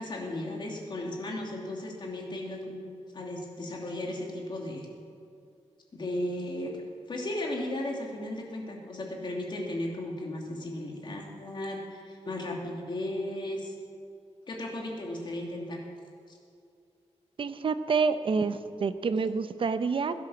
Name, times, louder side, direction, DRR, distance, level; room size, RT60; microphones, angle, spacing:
voice 1, 0.0-4.9 5.9-6.7 7.1-13.7 14.5-15.8 16.3-16.4, left 1 dB, 40° left, -1 dB, 2.7 m, -35 dB
voice 2, 17.4-20.1, right 5 dB, 50° right, 11 dB, 0.7 m, -28 dB
16.5 x 10.5 x 7.2 m, 2.4 s
wide cardioid pair, 155°, 12 cm